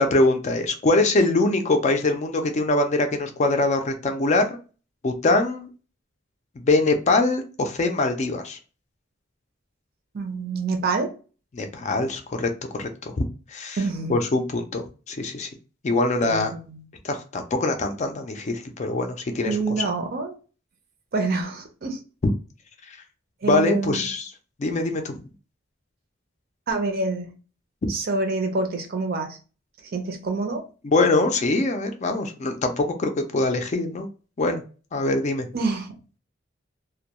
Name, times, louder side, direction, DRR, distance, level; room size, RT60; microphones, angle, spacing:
voice 1, 0.0-4.6 5.0-5.7 6.6-8.6 11.5-13.8 14.1-15.5 15.8-16.6 17.0-19.6 22.2-22.3 23.4-24.3 24.6-25.1 30.8-34.1 34.4-34.6 34.9-35.5, left 2 dB, 40° left, 0.4 m, -23 dB
voice 2, 10.1-11.1 13.8-14.2 16.2-16.8 19.4-20.4 21.1-22.0 23.4-24.1 26.7-27.3 27.9-29.4 29.9-30.6 35.5-36.0, right 3 dB, 55° right, 0.5 m, -27 dB
2.2 x 2.2 x 2.8 m
head